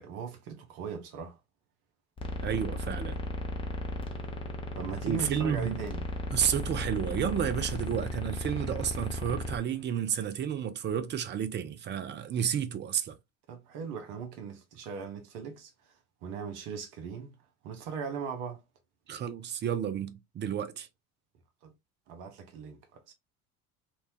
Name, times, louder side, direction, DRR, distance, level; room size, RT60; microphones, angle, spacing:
voice 1, 0.0-1.4 4.7-6.1 13.5-15.7 16.2-17.3 17.6-18.6 21.6-21.7 22.1-23.1, right 6 dB, 65° right, 0.8 m, -39 dB
sound 1, 2.2-9.6, left 1 dB, 10° left, 0.6 m, -35 dB
voice 2, 2.4-3.2 5.0-5.8 6.3-13.2 19.1-20.9, right 8 dB, 25° right, 0.4 m, -31 dB
2.8 x 2.1 x 2.7 m
hypercardioid pair, 60°, 45 cm